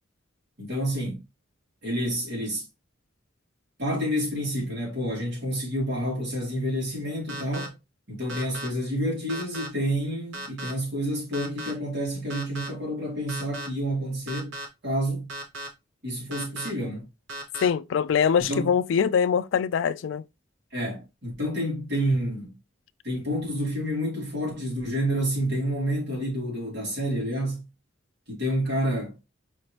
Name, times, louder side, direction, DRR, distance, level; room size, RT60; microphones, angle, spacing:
voice 1, 0.6-1.2 1.8-2.6 3.8-7.7 8.1-14.6 14.8-15.3 16.0-17.1 18.4-18.7 20.7-22.6 23.0-27.7 28.3-29.2, equal, 60° right, 2.8 m, -29 dB
sound 1, 7.3-7.7 8.3-8.7 9.3-9.7 10.3-10.7 11.3-11.7 12.3-12.7 13.3-13.7 14.3-14.7 15.3-15.7 16.3-16.7 17.3-17.7, right 1 dB, 85° right, 1.0 m, -36 dB
voice 2, 17.6-20.2, left 7 dB, 70° left, 0.3 m, -23 dB
5.0 x 3.2 x 2.9 m
head